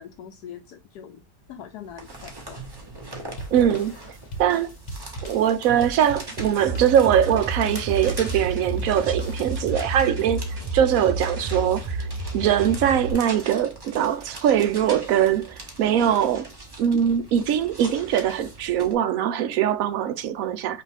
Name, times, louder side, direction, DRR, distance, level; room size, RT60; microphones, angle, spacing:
voice 1, 0.0-2.6, left 9 dB, 70° left, 1.0 m, -42 dB
sound 1, 1.6-18.9, right 2 dB, 20° right, 0.7 m, -41 dB
sound 2, 3.4-9.9, right 1 dB, 40° left, 0.6 m, -39 dB
voice 2, 3.5-4.0 4.4-4.7 5.2-10.4 10.7-12.1 12.3-16.5 16.8-20.8, right 9 dB, 75° right, 0.8 m, -22 dB
sound 3, 6.6-13.1, right 2 dB, 40° right, 2.7 m, -31 dB
5.6 x 2.5 x 3.3 m
omnidirectional pair, 2.0 m